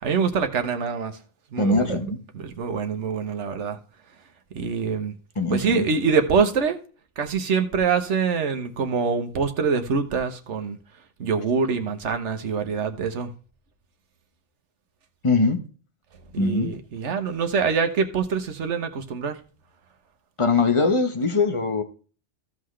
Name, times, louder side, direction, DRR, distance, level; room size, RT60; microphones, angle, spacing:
voice 1, 0.0-1.2 1.5-2.0 2.3-3.8 4.5-5.1 5.5-6.8 7.2-10.8 11.2-13.3 16.3-19.4, right 5 dB, 75° right, 1.3 m, -25 dB
voice 2, 1.6-2.2 5.4-5.9 15.2-15.6 16.4-16.7 20.4-21.8, left 3 dB, 25° left, 1.0 m, -21 dB
15.0 x 5.7 x 3.2 m
omnidirectional pair, 1.2 m